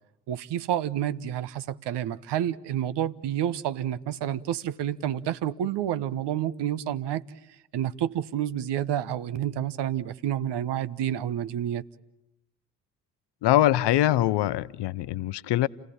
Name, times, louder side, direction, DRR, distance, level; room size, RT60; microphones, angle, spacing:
voice 1, 0.3-7.2 7.7-11.8, right 11 dB, 55° right, 1.1 m, -29 dB
voice 2, 13.4-15.7, left 14 dB, 55° left, 0.8 m, -23 dB
30.0 x 17.0 x 8.8 m
figure-of-eight pair, 45°, 49 cm